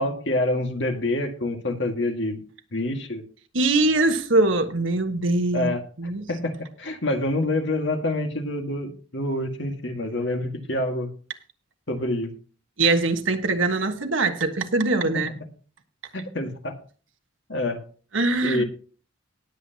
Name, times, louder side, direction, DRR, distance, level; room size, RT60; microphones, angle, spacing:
voice 1, 0.0-2.4 2.7-3.2 5.5-5.8 6.3-11.1 11.9-12.3 15.1-15.2 16.1-16.8 17.5-17.8 18.4-18.6, left 1 dB, 60° left, 1.9 m, -27 dB
voice 2, 3.5-5.7 6.0-6.2 12.8-15.3 18.1-18.6, right 2 dB, 70° right, 1.4 m, -22 dB
19.5 x 7.9 x 2.9 m
head